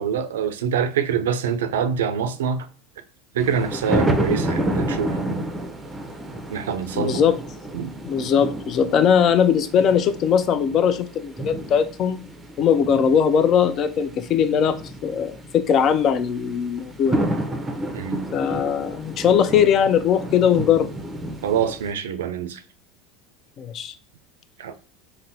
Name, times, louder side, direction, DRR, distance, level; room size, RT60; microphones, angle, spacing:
voice 1, 0.0-2.7 3.3-5.5 6.5-7.2 7.7-8.0 17.9-18.3 21.4-22.6 24.6-24.9, right 7 dB, 90° right, 0.3 m, -25 dB
sound 1, 3.4-21.9, right 1 dB, 15° right, 0.5 m, -30 dB
voice 2, 6.9-7.4 8.0-12.2 12.6-17.3 18.3-20.9 23.6-23.9, left 8 dB, 45° left, 0.4 m, -20 dB
4.0 x 2.1 x 2.6 m
supercardioid pair, 100°, 0 cm